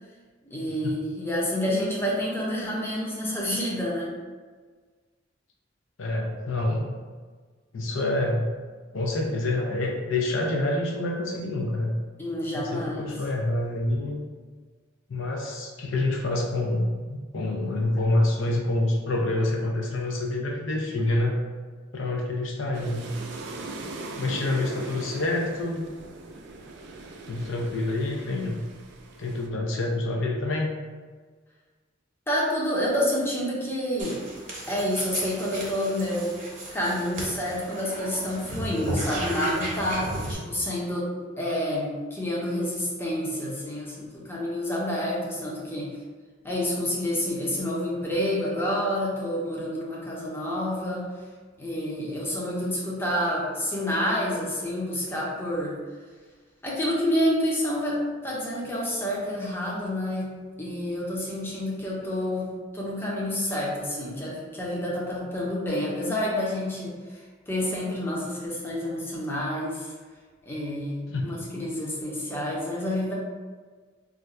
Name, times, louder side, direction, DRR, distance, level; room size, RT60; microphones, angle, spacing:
voice 1, 0.4-4.1 12.2-13.1 32.3-34.2 34.7-36.3 36.7-41.1 41.4-46.0 46.4-51.1 51.6-55.8 56.6-60.3 60.6-62.5 62.7-69.9 70.5-73.1, left 1 dB, 10° left, -5 dB, 0.6 m, -28 dB
voice 2, 6.0-6.9 7.7-8.5 8.9-12.0 12.5-14.2 15.1-21.3 21.9-23.1 24.2-25.9 27.3-28.7 29.2-30.7 71.1-71.4, left 2 dB, 70° left, 0 dB, 0.5 m, -27 dB
sound 1, 22.7-29.5, right 3 dB, 60° right, 0.3 m, -40 dB
sound 2, 34.0-40.3, right 1 dB, 40° right, 0.8 m, -34 dB
2.4 x 2.2 x 4.0 m, 1.4 s
head